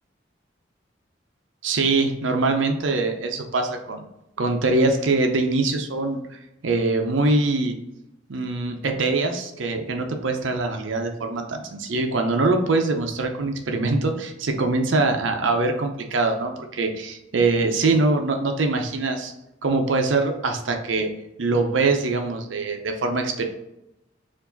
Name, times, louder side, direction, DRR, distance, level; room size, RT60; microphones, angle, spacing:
voice 1, 1.6-4.0 4.4-6.2 6.6-7.7 8.3-19.3 19.6-21.1 21.4-23.4, right 3 dB, 85° right, 4 dB, 0.6 m, -23 dB
4.6 x 2.6 x 3.9 m, 0.88 s
head